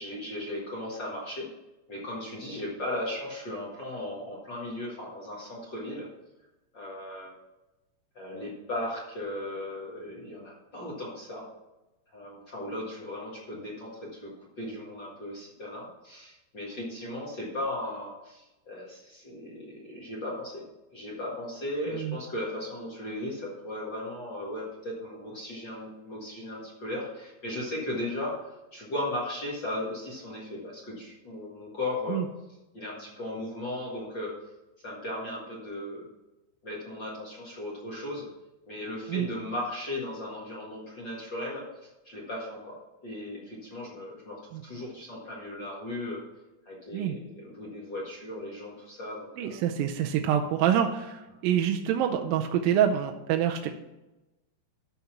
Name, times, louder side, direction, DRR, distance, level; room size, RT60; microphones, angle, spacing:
voice 1, 0.0-1.5 1.9-6.1 6.7-7.3 8.1-11.5 12.1-20.6 20.9-32.2 32.7-34.3 34.8-36.1 36.6-38.3 38.7-42.8 43.0-46.2 46.6-49.6, left 1 dB, 45° left, -5 dB, 1.6 m, -36 dB
voice 2, 49.4-53.8, right 9 dB, 80° right, 4 dB, 2.2 m, -26 dB
12.5 x 4.3 x 5.8 m, 1.0 s
omnidirectional pair, 4.4 m